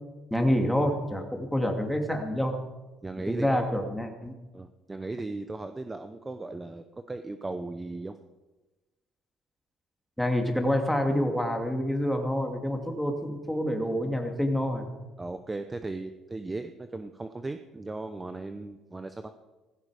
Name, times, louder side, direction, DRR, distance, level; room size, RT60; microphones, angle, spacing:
voice 1, 0.3-2.5 3.3-4.3 10.2-14.8, equal, ahead, 3 dB, 2.5 m, -27 dB
voice 2, 3.0-3.7 4.5-8.2 15.2-19.3, right 2 dB, 15° right, 8 dB, 0.8 m, -37 dB
16.5 x 15.5 x 4.9 m, 1.2 s
cardioid pair, 105°, 0 cm